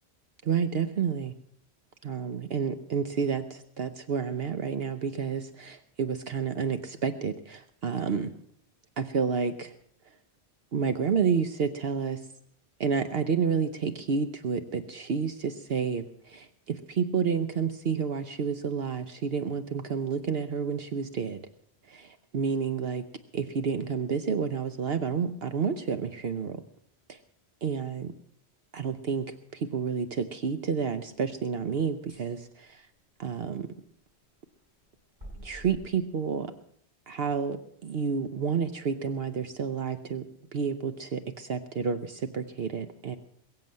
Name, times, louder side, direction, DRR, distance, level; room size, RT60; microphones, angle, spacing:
voice 1, 0.4-1.3 2.0-8.3 9.0-9.7 10.7-12.2 12.8-21.4 21.9-23.0 23.3-26.6 27.1-27.2 27.6-28.1 28.7-32.8 33.2-33.7 35.4-36.5 37.1-40.2 40.5-43.2, right 6 dB, 65° right, 9 dB, 1.1 m, -30 dB
sound 1, 32.1-32.4 35.2-35.7, equal, 45° right, 7.2 m, -45 dB
22.0 x 7.7 x 7.6 m, 0.64 s
omnidirectional pair, 1.1 m